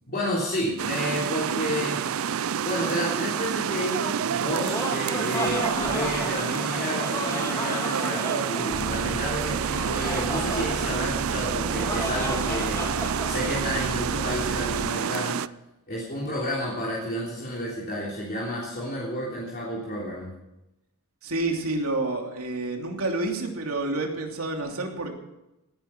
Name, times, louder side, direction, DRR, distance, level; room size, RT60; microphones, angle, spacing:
voice 1, 0.1-2.0 2.6-12.8 13.3-15.4 15.9-20.3, equal, 45° left, -5 dB, 3.5 m, -31 dB
sound 1, 0.8-15.5, right 8 dB, 70° right, 0.4 m, -28 dB
Laughter, 4.4-13.5, left 1 dB, 15° left, 2.4 m, -34 dB
Bus, 8.7-14.9, right 1 dB, 45° right, 0.8 m, -36 dB
voice 2, 21.2-25.1, right 2 dB, 85° right, 2 dB, 3.0 m, -29 dB
18.5 x 11.0 x 5.9 m, 0.94 s
head